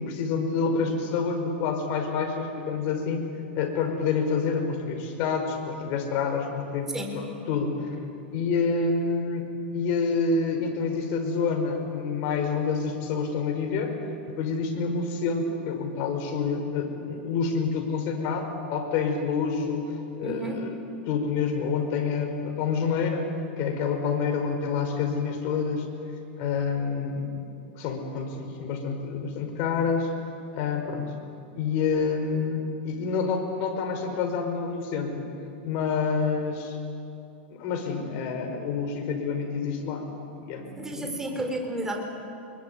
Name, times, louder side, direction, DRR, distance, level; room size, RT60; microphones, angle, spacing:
voice 1, 0.0-3.3 3.6-7.9 8.3-13.9 14.2-20.7 21.1-23.3 23.6-25.9 26.4-27.4 27.8-30.1 30.5-31.1 31.5-35.2 35.6-36.8 37.5-41.1, left 5 dB, 45° left, 4 dB, 5.3 m, -28 dB
voice 2, 20.2-20.6 40.8-42.0, right 1 dB, 10° right, 3 dB, 3.6 m, -32 dB
25.5 x 23.0 x 9.6 m, 2.6 s
supercardioid pair, 135°, 6 cm